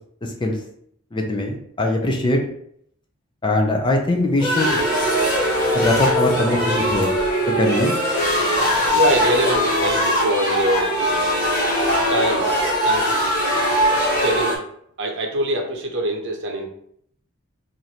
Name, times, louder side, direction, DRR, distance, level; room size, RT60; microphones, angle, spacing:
voice 1, 1.1-2.4 3.4-4.8 5.7-7.1 7.6-7.9, left 2 dB, 20° left, 2 dB, 0.5 m, -21 dB
sound 1, 4.4-14.6, equal, 40° left, 1.3 m, -20 dB
voice 2, 8.9-11.0 12.1-12.5 12.8-13.2 14.2-14.6 15.0-16.6, right 1 dB, 55° right, 2 dB, 0.7 m, -23 dB
3.0 x 2.6 x 4.1 m, 0.69 s
head